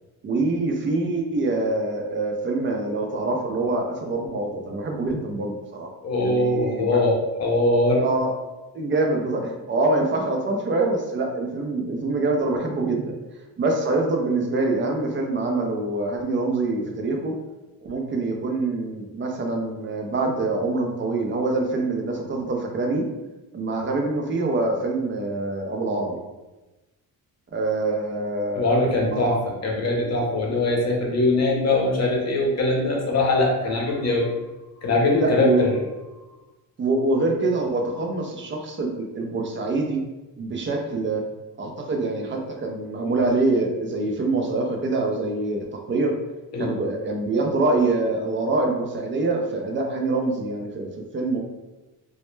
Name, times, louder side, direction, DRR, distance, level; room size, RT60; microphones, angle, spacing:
voice 1, 0.2-5.9 6.2-7.0 8.0-8.3 8.7-13.1 13.6-17.3 17.8-23.1 23.5-26.2 27.5-29.4 35.2-35.6 36.8-40.0 40.4-41.2 41.6-46.1 46.6-51.4, right 2 dB, 35° right, 2 dB, 0.4 m, -25 dB
voice 2, 6.0-8.1 28.5-34.5 34.7-35.7 46.5-46.7, left 2 dB, 45° left, -1 dB, 0.6 m, -22 dB
2.1 x 2.0 x 3.0 m, 1.1 s
cardioid pair, 120°, 37 cm